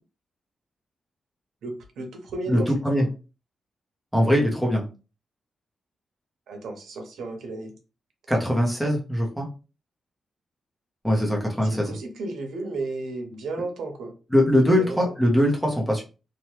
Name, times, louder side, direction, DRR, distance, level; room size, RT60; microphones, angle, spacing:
voice 1, 1.6-3.1 6.5-7.7 11.6-14.1 14.7-15.1, right 2 dB, 90° right, 3 dB, 0.8 m, -34 dB
voice 2, 2.5-3.1 4.1-4.9 8.3-9.5 11.0-12.0 14.3-16.0, equal, ahead, -1 dB, 0.7 m, -21 dB
2.9 x 2.2 x 3.1 m, 0.32 s
wide cardioid pair, 170°, 0 cm